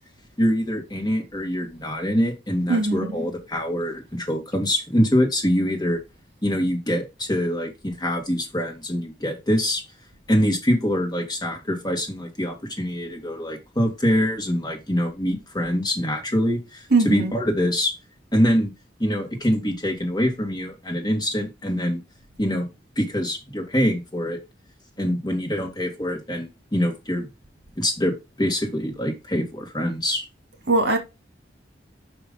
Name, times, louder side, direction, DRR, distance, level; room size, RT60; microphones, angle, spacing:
voice 1, 0.4-6.0 6.4-9.8 10.3-17.9 18.3-18.7 19.0-22.0 22.4-22.7 23.0-24.4 25.0-27.3 27.8-30.2, equal, 25° left, 2.1 m, -24 dB
voice 2, 2.7-3.2 16.9-17.3 30.7-31.0, right 3 dB, 65° right, 2.2 m, -20 dB
5.8 x 5.4 x 5.2 m
head